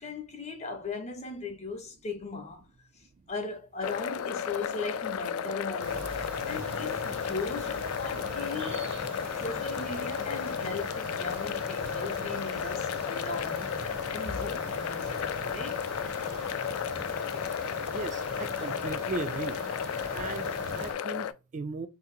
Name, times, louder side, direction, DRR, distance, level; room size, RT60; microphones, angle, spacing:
voice 1, 0.0-2.7 3.0-6.1 6.4-9.0 9.3-13.8 14.1-15.8, left 3 dB, 30° left, 0.5 m, -38 dB
Heater sausages, 3.8-21.3, left 8 dB, 80° left, 0.3 m, -33 dB
sound 1, 5.8-20.9, right 3 dB, 55° right, 0.8 m, -42 dB
voice 2, 17.9-19.6 20.1-21.9, right 3 dB, 35° right, 0.3 m, -37 dB
2.7 x 2.5 x 3.9 m
head